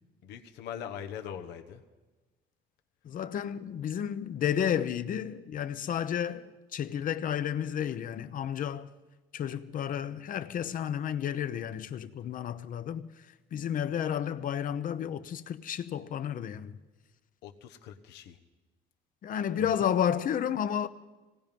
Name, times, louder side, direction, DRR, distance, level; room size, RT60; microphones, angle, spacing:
voice 1, 0.2-1.8 17.4-18.4 19.6-19.9, left 9 dB, 85° left, 1.4 m, -42 dB
voice 2, 3.0-8.9 9.3-13.1 13.5-16.8 19.2-20.9, left 9 dB, 55° left, 0.9 m, -31 dB
25.5 x 19.0 x 5.4 m
cardioid pair, 110°, 17 cm